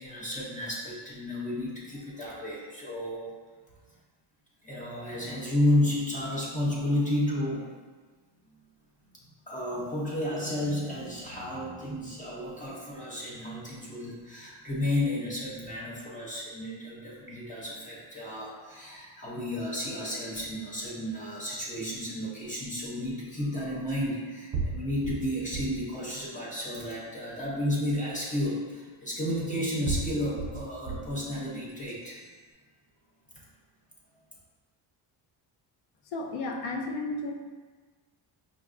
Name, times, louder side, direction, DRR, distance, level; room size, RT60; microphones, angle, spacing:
voice 1, 0.0-3.3 4.6-7.7 9.5-32.2, left 1 dB, 20° left, -5 dB, 0.5 m, -32 dB
sound 1, 22.5-22.6 23.9-24.0 24.5-25.8 26.4-26.9 27.9-28.0 29.2-29.3 29.9-31.2 31.7-32.2, right 4 dB, 40° right, 0.5 m, -35 dB
voice 2, 36.1-37.3, left 2 dB, 85° left, 2 dB, 0.6 m, -33 dB
4.9 x 2.3 x 2.4 m, 1.4 s
cardioid pair, 160°, 47 cm